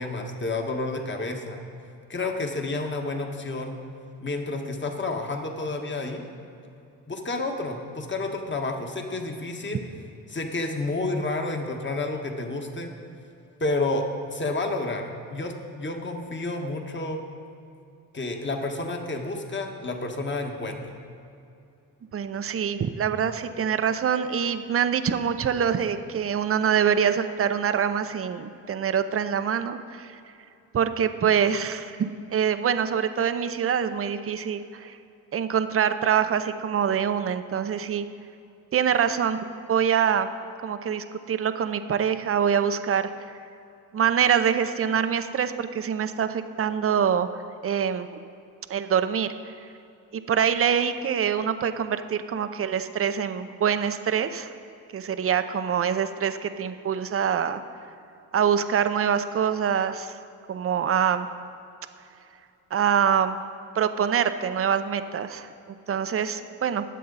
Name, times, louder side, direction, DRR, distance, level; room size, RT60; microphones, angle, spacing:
voice 1, 0.0-1.6 2.1-3.8 4.2-6.2 7.1-9.8 10.3-12.9 13.6-17.2 18.1-21.0, left 2 dB, 30° left, 3 dB, 1.7 m, -30 dB
voice 2, 22.1-30.2 30.7-35.0 35.3-38.0 38.7-39.4 39.7-40.3 40.6-43.1 43.9-47.3 47.6-48.1 48.7-49.5 50.3-54.5 54.9-57.6 58.3-60.1 60.5-61.3 62.7-63.4 63.8-65.5 65.9-66.8, right 8 dB, 35° right, 10 dB, 0.7 m, -25 dB
20.0 x 7.5 x 4.1 m, 2.6 s
supercardioid pair, 60°, 39 cm